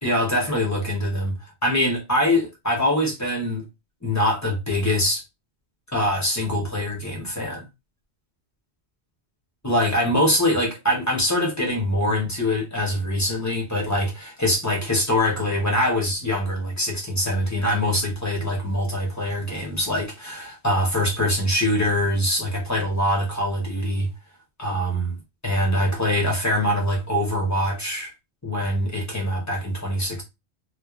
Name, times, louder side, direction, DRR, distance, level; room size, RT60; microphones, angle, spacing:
voice 1, 0.0-3.6 4.0-5.2 5.9-7.6 9.6-24.1 24.6-25.1 25.4-28.1 28.4-30.2, left 1 dB, 20° left, 0.7 m, -23 dB
3.0 x 2.1 x 2.4 m
omnidirectional pair, 1.1 m